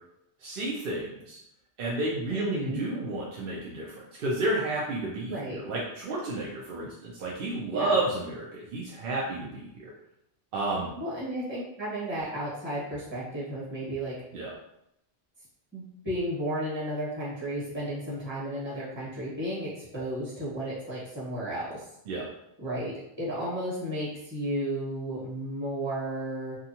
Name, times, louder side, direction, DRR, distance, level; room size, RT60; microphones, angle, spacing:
voice 1, 0.4-1.4 1.8-9.9 10.5-10.9 14.3-14.5 22.1-22.3, right 2 dB, 65° right, -5 dB, 0.7 m, -31 dB
voice 2, 2.3-2.8 5.3-5.6 7.7-8.0 10.9-14.1 15.7-21.8 22.6-22.9 23.2-26.6, right 1 dB, 10° right, -8 dB, 1.1 m, -33 dB
2.5 x 2.3 x 2.8 m, 0.82 s
omnidirectional pair, 1.1 m